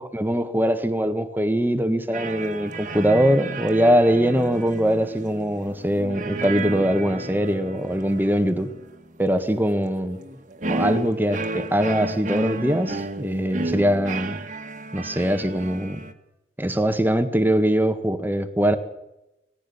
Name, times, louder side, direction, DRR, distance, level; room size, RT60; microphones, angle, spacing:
voice 1, 0.0-8.7 9.2-10.2 10.7-14.4 14.9-16.0 16.6-18.8, equal, 10° right, 8 dB, 1.7 m, -22 dB
sound 1, 2.1-16.1, right 2 dB, 45° right, 1.9 m, -33 dB
20.5 x 15.0 x 8.6 m, 0.91 s
head